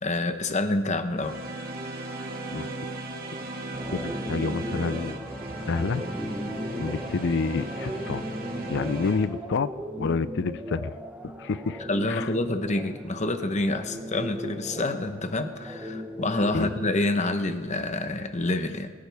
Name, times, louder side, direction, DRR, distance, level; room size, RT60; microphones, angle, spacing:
voice 1, 0.0-1.4 11.9-18.9, left 2 dB, 30° left, 8 dB, 1.0 m, -27 dB
sound 1, 1.2-9.3, right 1 dB, 40° right, 2.0 m, -36 dB
sound 2, 3.7-16.9, equal, 5° right, 1.0 m, -37 dB
voice 2, 3.9-5.3 5.7-6.0 6.8-8.3 8.7-9.7 10.0-10.9 11.4-11.8 12.1-12.3 16.5-16.7, left 4 dB, 55° left, 16 dB, 0.4 m, -28 dB
23.0 x 14.5 x 3.5 m, 1.5 s
head